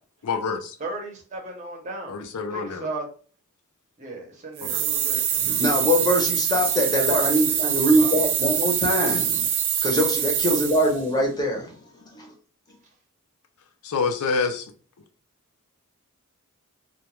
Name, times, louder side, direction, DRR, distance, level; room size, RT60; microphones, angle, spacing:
voice 1, 0.2-0.8 2.1-2.9 4.6-4.8 13.8-14.7, left 4 dB, 85° left, 0.4 m, -27 dB
voice 2, 0.8-2.2 2.5-3.0 4.0-5.4 8.0-8.1, right 2 dB, 35° right, 0.7 m, -35 dB
sound 1, 4.6-11.0, right 9 dB, 65° right, 0.4 m, -24 dB
voice 3, 5.4-9.4 9.8-12.3, equal, 20° left, 0.6 m, -23 dB
2.2 x 2.1 x 3.0 m
head